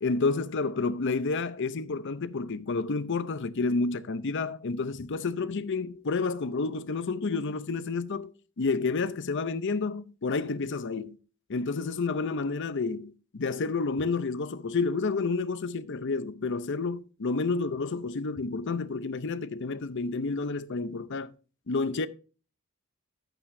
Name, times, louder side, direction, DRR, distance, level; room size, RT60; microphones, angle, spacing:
voice 1, 0.0-11.2 11.5-21.3 21.7-22.1, left 4 dB, 60° left, 0.6 m, -30 dB
11.5 x 9.0 x 2.7 m
head